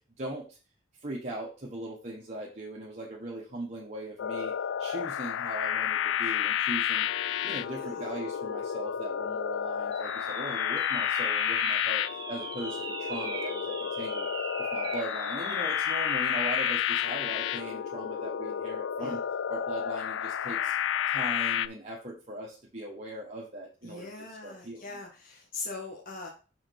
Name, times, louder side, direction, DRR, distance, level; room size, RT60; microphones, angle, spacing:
voice 1, 0.2-0.6 1.0-4.5 4.8-7.1 7.4-14.3 14.6-19.2 19.5-20.8 21.1-24.8, right 1 dB, 40° right, -3 dB, 1.3 m, -39 dB
sound 1, 4.2-21.7, left 9 dB, 75° left, 0.3 m, -31 dB
voice 2, 7.7-8.1 19.0-19.2 23.8-26.3, left 3 dB, 45° left, -1 dB, 1.7 m, -41 dB
sound 2, 9.9-16.9, right 4 dB, 20° right, 0.9 m, -39 dB
6.5 x 4.9 x 4.7 m, 0.34 s
head